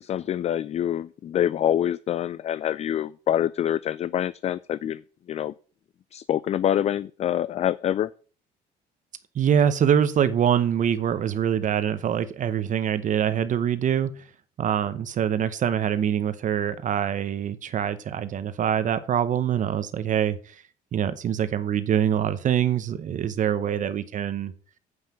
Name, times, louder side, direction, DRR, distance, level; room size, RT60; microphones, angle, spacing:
voice 1, 0.0-5.0 5.3-5.5 6.1-8.1, left 10 dB, 40° left, 18 dB, 0.3 m, -26 dB
voice 2, 9.3-14.2 14.6-20.6 20.9-24.5, right 9 dB, 50° right, 12 dB, 0.8 m, -24 dB
7.9 x 5.6 x 7.2 m, 0.40 s
cardioid pair, 110°, 17 cm